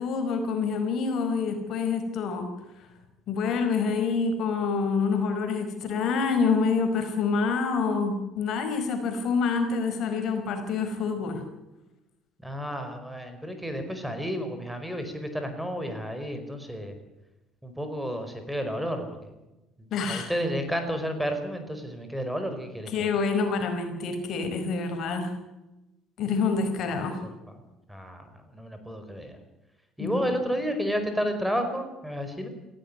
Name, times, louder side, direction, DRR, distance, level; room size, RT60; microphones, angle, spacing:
voice 1, 0.0-2.5 3.3-11.4 19.9-20.3 22.9-25.3 26.2-27.2 30.0-30.2, left 5 dB, 60° left, 7 dB, 4.9 m, -27 dB
voice 2, 12.4-16.9 17.6-19.3 20.1-22.9 27.9-29.4 30.0-32.5, equal, 5° right, 7 dB, 4.8 m, -31 dB
18.5 x 16.5 x 9.9 m, 0.99 s
cardioid pair, 100°, 0 cm